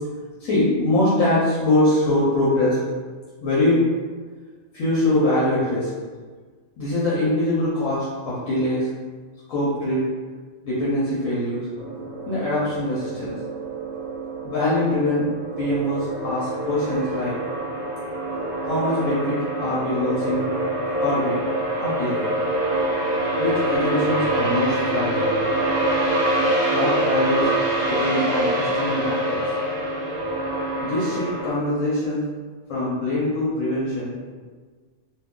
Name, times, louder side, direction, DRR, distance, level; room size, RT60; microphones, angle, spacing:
voice 1, 0.4-2.8 3.4-3.8 4.7-5.9 6.8-8.9 9.5-10.0 10.6-11.7 12.3-13.4 14.4-15.3 15.6-17.4 18.6-20.5 21.0-21.4 21.8-22.2 23.4-25.3 26.7-27.6 27.9-29.5 30.8-32.2 32.7-34.2, left 1 dB, 70° left, -8 dB, 1.1 m, -23 dB
sound 1, 11.8-31.5, right 1 dB, 90° right, 0.3 m, -25 dB
2.7 x 2.3 x 3.5 m, 1.5 s
omnidirectional pair, 1.5 m